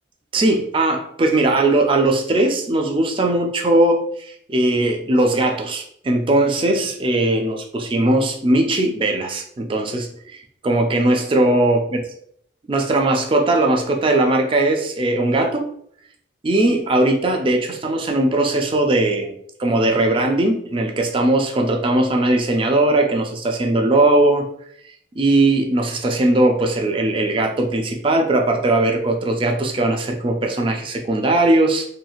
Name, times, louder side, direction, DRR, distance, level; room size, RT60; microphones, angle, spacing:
voice 1, 0.3-12.0 12.7-15.7 16.4-19.3 19.6-24.5 25.2-31.9, right 2 dB, 25° right, 3 dB, 0.3 m, -19 dB
2.6 x 2.4 x 2.8 m, 0.68 s
head